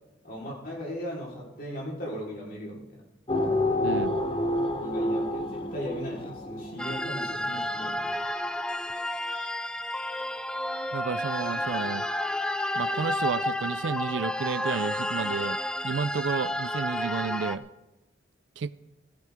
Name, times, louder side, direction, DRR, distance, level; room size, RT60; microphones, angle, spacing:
voice 1, 0.2-3.0 4.8-8.1, equal, 50° left, -3 dB, 3.9 m, -37 dB
sound 1, 3.3-7.3, left 1 dB, 25° left, 1.0 m, -28 dB
voice 2, 3.8-4.2 10.9-12.0 12.7-15.6 15.8-17.7 18.6-18.7, right 5 dB, 70° right, 16 dB, 0.4 m, -31 dB
sound 2, 6.8-17.6, left 1 dB, 5° left, 0.4 m, -31 dB
16.5 x 14.5 x 3.6 m, 1.0 s
head